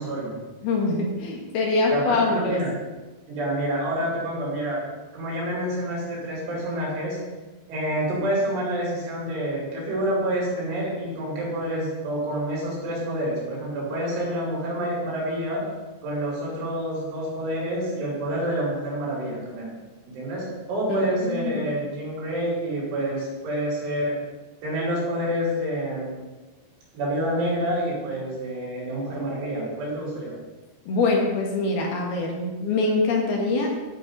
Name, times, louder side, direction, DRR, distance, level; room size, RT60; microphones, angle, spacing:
voice 1, 0.0-0.5 1.9-2.7 3.3-4.8 5.1-7.2 7.7-15.6 16.0-19.7 20.1-24.1 24.6-26.1 27.0-30.3, right 1 dB, 90° right, -6 dB, 6.9 m, -28 dB
voice 2, 0.6-2.6 20.9-21.6 30.9-33.7, left 3 dB, 65° left, 0 dB, 3.2 m, -24 dB
15.0 x 8.1 x 4.1 m, 1.2 s
omnidirectional pair, 5.3 m